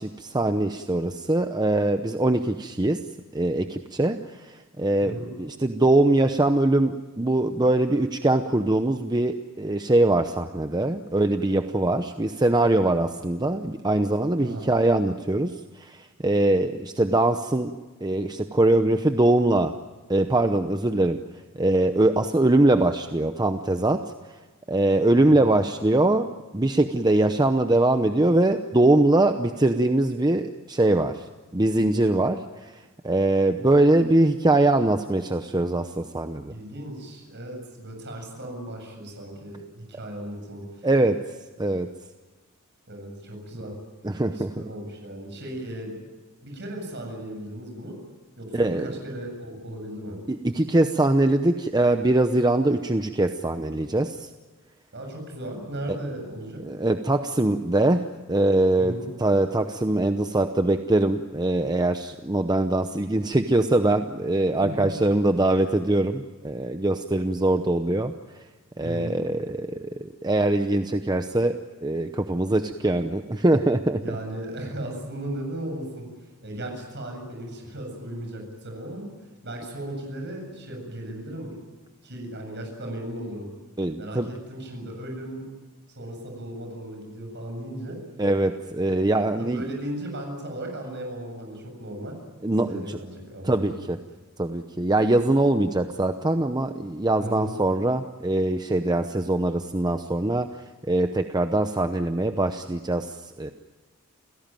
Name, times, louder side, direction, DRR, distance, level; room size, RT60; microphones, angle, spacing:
voice 1, 0.0-3.0 3.3-17.7 18.0-19.7 20.1-21.2 21.5-24.0 24.7-26.3 26.5-31.3 31.5-32.8 33.0-36.5 40.8-41.2 41.6-41.9 44.0-44.5 48.5-49.0 50.3-54.3 56.6-58.9 59.2-68.4 68.8-74.2 83.8-84.3 88.2-89.7 92.4-93.0 93.4-94.0 94.4-100.5 100.9-103.5, right 2 dB, 20° right, 7 dB, 0.8 m, -22 dB
voice 2, 5.0-5.3 14.4-14.7 25.1-25.4 36.5-40.9 42.9-43.7 44.1-45.9 46.4-48.0 48.4-50.2 54.9-56.6 58.8-59.1 64.6-64.9 68.8-69.2 74.0-76.1 76.4-79.1 79.4-81.5 82.0-83.5 84.0-85.5 85.9-88.0 88.9-92.1 92.5-93.8 97.2-97.5, right 1 dB, 55° right, 2 dB, 7.7 m, -36 dB
29.5 x 17.0 x 9.1 m, 1.3 s
head